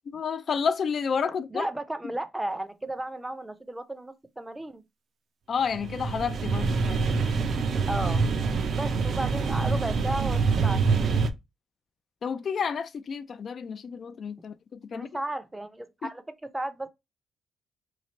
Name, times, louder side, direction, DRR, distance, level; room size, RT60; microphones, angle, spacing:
voice 1, 0.1-1.7 5.5-7.2 7.6-7.7 12.2-15.1, left 6 dB, 50° left, 0.3 m, -30 dB
voice 2, 1.5-4.8 7.9-8.3 8.7-10.8 11.1-11.2 14.9-16.9, right 1 dB, 10° right, 0.5 m, -34 dB
sound 1, 5.7-11.3, right 4 dB, 60° right, 0.5 m, -25 dB
3.1 x 2.4 x 4.0 m
cardioid pair, 90°, 0 cm